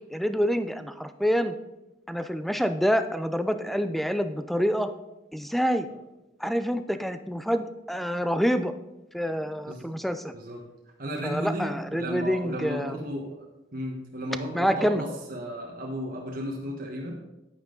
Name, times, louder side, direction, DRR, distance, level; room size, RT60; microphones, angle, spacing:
voice 1, 0.1-1.5 2.1-4.9 5.3-5.9 6.4-8.7 9.1-10.3 11.2-13.0 14.5-15.0, equal, ahead, 10 dB, 0.4 m, -27 dB
voice 2, 10.3-10.6 11.0-13.4 13.7-17.2, equal, 50° right, -1 dB, 1.3 m, -34 dB
9.7 x 9.0 x 3.9 m, 0.96 s
head